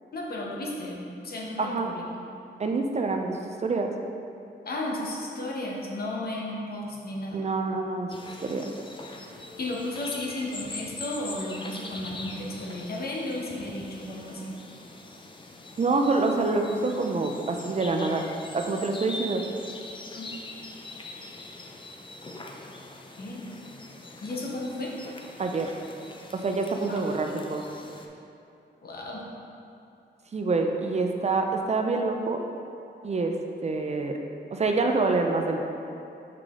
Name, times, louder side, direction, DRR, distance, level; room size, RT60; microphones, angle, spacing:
voice 1, 0.1-2.0 4.6-7.4 9.6-14.5 20.1-20.3 23.2-23.5 24.2-24.9 26.9-27.0 28.8-29.2, left 1 dB, 60° left, -2 dB, 1.0 m, -34 dB
voice 2, 1.6-1.9 2.6-3.9 7.3-8.7 15.8-18.3 18.5-19.4 25.4-25.7 26.3-27.7 30.3-32.4 33.0-33.3 33.6-34.2 34.5-35.7, right 3 dB, 35° right, 3 dB, 0.4 m, -26 dB
sound 1, 8.1-28.1, left 2 dB, 25° left, 0.5 m, -43 dB
5.9 x 4.9 x 3.7 m, 2.7 s
wide cardioid pair, 120°, 18 cm